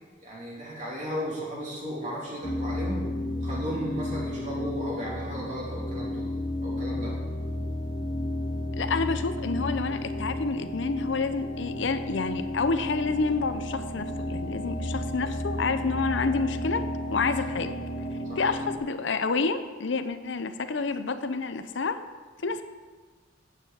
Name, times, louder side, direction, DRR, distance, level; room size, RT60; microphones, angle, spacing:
voice 1, 0.2-3.0 3.4-6.4 6.6-7.2 18.2-18.4, equal, 40° right, -5 dB, 2.9 m, -35 dB
sound 1, 2.4-18.8, left 1 dB, 40° left, 1.5 m, -32 dB
voice 2, 8.8-16.8 17.1-17.7 18.4-22.0 22.4-22.6, left 4 dB, 65° left, 10 dB, 0.6 m, -28 dB
9.0 x 7.3 x 7.5 m, 1.4 s
head